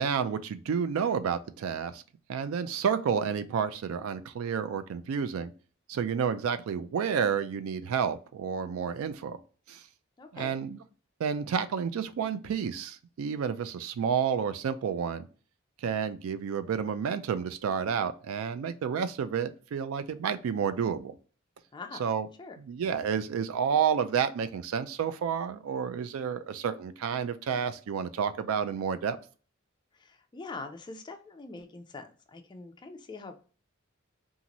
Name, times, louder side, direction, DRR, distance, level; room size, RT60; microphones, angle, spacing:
voice 1, 0.0-2.0 2.3-5.5 5.9-9.4 9.7-9.8 10.3-10.8 11.2-15.3 15.8-21.1 22.0-22.3 22.7-29.2, right 7 dB, 85° right, 12 dB, 0.3 m, -30 dB
voice 2, 10.2-10.6 21.7-22.0 22.4-22.6 29.9-33.4, left 3 dB, 20° left, 6 dB, 0.3 m, -43 dB
2.6 x 2.5 x 2.9 m, 0.39 s
head